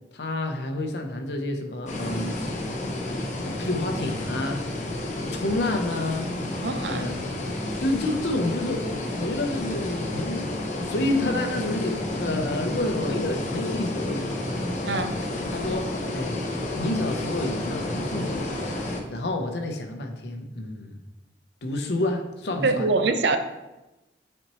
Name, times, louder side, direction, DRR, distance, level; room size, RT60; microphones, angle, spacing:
voice 1, 0.1-2.4 3.3-4.6 5.2-6.3 6.9-7.4 7.8-14.4 15.5-15.9 16.1-16.4 16.8-18.6 19.1-21.0 21.6-22.9, left 2 dB, 70° left, 4 dB, 0.8 m, -29 dB
sound 1, 1.9-19.0, left 1 dB, 40° left, 0.9 m, -30 dB
voice 2, 6.6-7.1 14.9-15.2 22.6-23.4, right 3 dB, 75° right, 8 dB, 0.5 m, -24 dB
8.5 x 4.3 x 3.1 m, 1.0 s
head